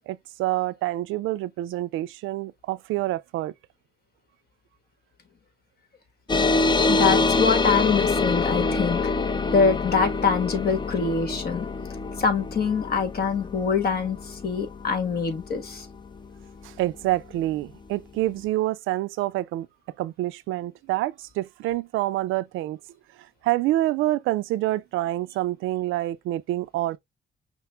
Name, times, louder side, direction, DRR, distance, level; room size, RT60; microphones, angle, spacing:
voice 1, 0.0-3.5 16.6-19.7 20.0-22.8 23.4-27.0, right 16 dB, 90° right, 0.4 m, -27 dB
sound 1, 6.3-17.2, left 3 dB, 20° left, 0.7 m, -26 dB
voice 2, 6.9-9.1 9.5-11.7 12.2-15.9, left 5 dB, 50° left, 1.4 m, -24 dB
5.9 x 2.1 x 3.3 m
cardioid pair, 90°, 20 cm